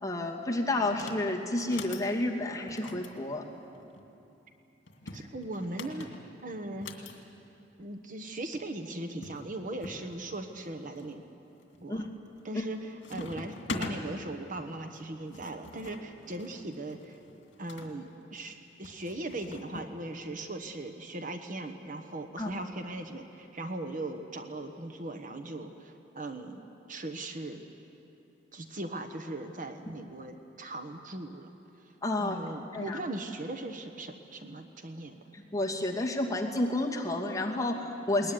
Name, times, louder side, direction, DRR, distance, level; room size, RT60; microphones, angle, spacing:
voice 1, 0.0-3.4 11.9-12.1 12.5-12.6 22.4-22.5 32.0-32.4 32.7-33.0 35.3-38.3, left 2 dB, 20° left, -2 dB, 2.5 m, -30 dB
sound 1, 0.9-1.2 1.6-2.1 2.7-4.1 4.9-7.1 8.2-8.3 8.5-8.6 9.2-10.0 10.6-11.1 11.6-12.0 12.3-12.7 13.0-14.0 14.9-17.9 18.8-19.9, left 3 dB, 75° left, 2.5 m, -43 dB
voice 2, 5.1-6.1 6.4-6.9 7.8-11.2 11.8-12.1 12.4-17.2 17.6-26.6 26.9-27.7 28.5-31.5 32.2-35.2 38.2-38.3, right 2 dB, 45° right, 6 dB, 1.3 m, -39 dB
21.0 x 20.5 x 9.9 m, 2.8 s
head